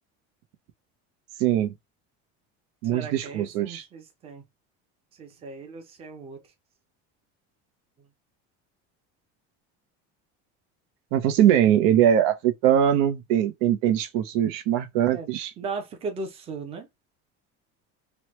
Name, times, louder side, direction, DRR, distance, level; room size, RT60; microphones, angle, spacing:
voice 1, 1.4-1.7 2.8-3.8 11.1-15.5, right 10 dB, 85° right, 0.7 m, -22 dB
voice 2, 2.8-4.4 5.2-6.4 15.1-16.9, right 4 dB, 20° right, 0.5 m, -37 dB
3.1 x 2.2 x 3.0 m
cardioid pair, 175°, 30 cm